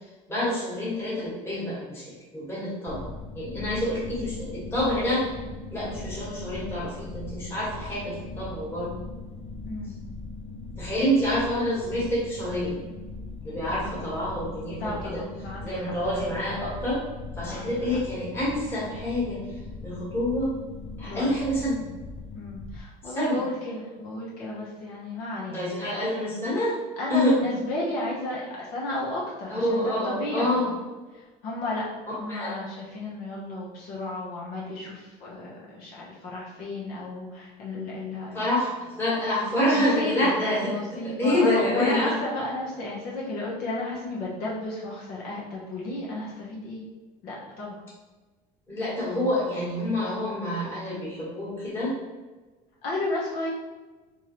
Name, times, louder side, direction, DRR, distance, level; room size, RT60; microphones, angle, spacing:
voice 1, 0.3-5.2 5.7-8.9 10.7-12.8 13.4-15.2 15.6-17.1 17.3-19.6 19.8-20.5 21.0-21.8 23.0-23.4 25.5-26.8 27.1-27.4 29.5-30.7 32.3-32.6 38.3-42.1 48.7-51.9, left 1 dB, 15° left, -7 dB, 1.4 m, -27 dB
sound 1, 2.9-22.8, left 3 dB, 40° left, 0.4 m, -39 dB
voice 2, 9.6-10.0 14.8-16.2 17.4-17.7 21.0-21.3 22.3-26.0 27.0-30.6 31.1-38.5 39.7-40.4 40.6-46.8 47.2-47.8 52.8-53.5, left 2 dB, 60° left, -5 dB, 0.9 m, -33 dB
3.6 x 3.1 x 3.0 m, 1.3 s
cardioid pair, 150°, 17 cm